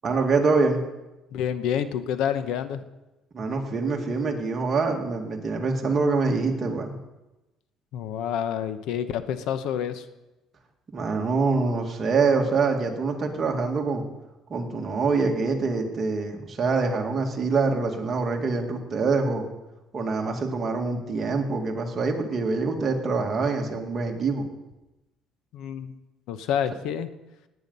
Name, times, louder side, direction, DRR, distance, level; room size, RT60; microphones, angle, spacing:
voice 1, 0.0-0.8 3.3-7.0 10.9-14.0 14.5-19.5 19.9-24.5, right 4 dB, 30° right, 2 dB, 2.1 m, -25 dB
voice 2, 1.3-2.8 7.9-10.0 25.5-26.0 26.3-27.1, left 9 dB, 75° left, 11 dB, 1.0 m, -28 dB
17.5 x 9.2 x 5.5 m, 1.0 s
cardioid pair, 130°, 0 cm